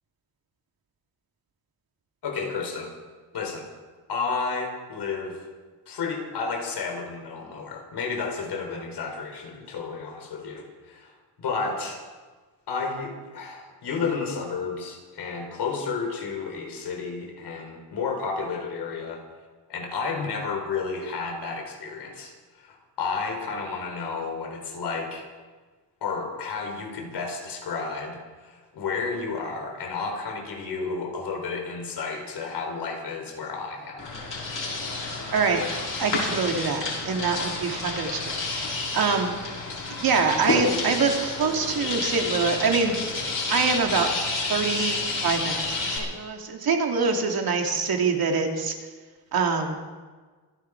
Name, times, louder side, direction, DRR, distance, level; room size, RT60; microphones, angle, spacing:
voice 1, 2.2-2.9 3.3-3.7 4.1-5.4 5.9-12.0 12.7-19.3 19.7-25.3 26.0-34.0, left 4 dB, 70° left, 3 dB, 4.4 m, -32 dB
sound 1, 34.0-46.0, left 3 dB, 45° left, 6.5 m, -30 dB
voice 2, 35.3-35.7 36.0-39.4 39.9-43.0 43.5-44.1 44.5-45.0 45.2-48.7 49.3-49.8, right 5 dB, 55° right, 2 dB, 2.9 m, -25 dB
26.5 x 10.5 x 4.9 m, 1.4 s
cardioid pair, 90°, 42 cm